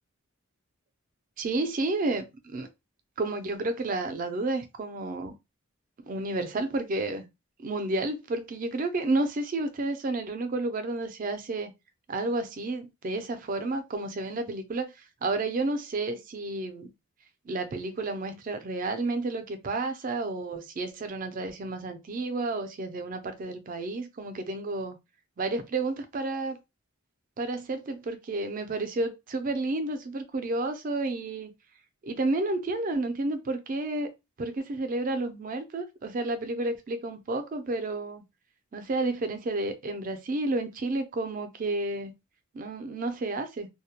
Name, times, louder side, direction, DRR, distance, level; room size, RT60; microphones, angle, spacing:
voice 1, 1.4-2.7 3.2-5.4 6.1-7.3 7.6-11.7 12.1-14.9 15.2-16.9 17.5-25.0 25.4-26.6 27.4-31.5 32.0-34.1 34.4-38.2 38.7-42.1 42.5-43.7, right 2 dB, 40° right, 0.4 m, -31 dB
2.2 x 2.0 x 2.8 m
head